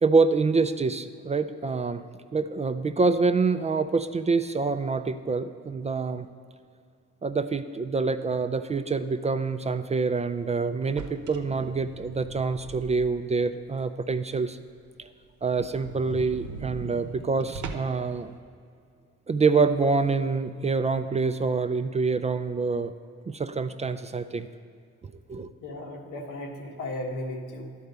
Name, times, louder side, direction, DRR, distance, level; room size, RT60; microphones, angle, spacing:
voice 1, 0.0-2.0 2.3-6.3 7.2-14.6 15.0-15.1 15.4-18.3 19.3-22.9 23.3-24.5 25.3-25.5, right 4 dB, 25° right, 9 dB, 0.3 m, -26 dB
sound 1, 10.8-13.4 13.8-13.9 14.3-14.4 14.7-14.8 15.0-15.1 15.4-18.1, right 4 dB, 80° right, 0.8 m, -40 dB
voice 2, 25.6-27.8, left 1 dB, 85° left, 2 dB, 1.3 m, -35 dB
11.0 x 4.6 x 6.7 m, 2.2 s
cardioid pair, 90°, 30 cm